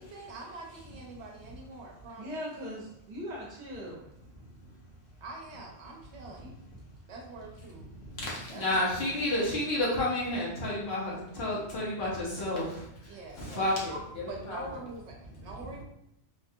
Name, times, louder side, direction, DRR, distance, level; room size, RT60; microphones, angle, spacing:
voice 1, 0.0-2.4 5.2-6.6 7.1-7.8 8.5-9.2 13.1-15.8, right 2 dB, 75° right, 0 dB, 1.0 m, -45 dB
voice 2, 2.1-4.0, equal, 45° right, -3 dB, 1.0 m, -39 dB
voice 3, 8.0-13.1 13.3-14.6 15.6-15.8, left 1 dB, 65° left, -5 dB, 1.2 m, -31 dB
3.2 x 2.3 x 2.7 m, 0.77 s
omnidirectional pair, 1.2 m